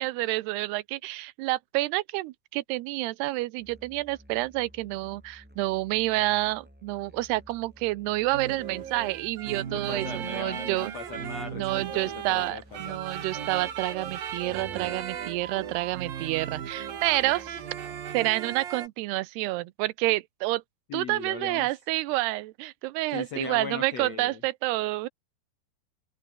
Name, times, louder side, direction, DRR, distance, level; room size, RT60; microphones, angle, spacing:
voice 1, 0.0-10.9 11.5-17.6 18.1-20.6 20.9-25.1, right 19 dB, 90° right, 2.8 m, -29 dB
Musical instrument, 3.6-18.3, equal, 5° right, 3.1 m, -54 dB
sound 1, 8.3-18.9, right 9 dB, 60° right, 4.1 m, -36 dB
voice 2, 9.6-11.8 12.3-13.0 20.9-21.7 23.1-24.4, left 6 dB, 50° left, 2.3 m, -38 dB
open air
omnidirectional pair, 4.7 m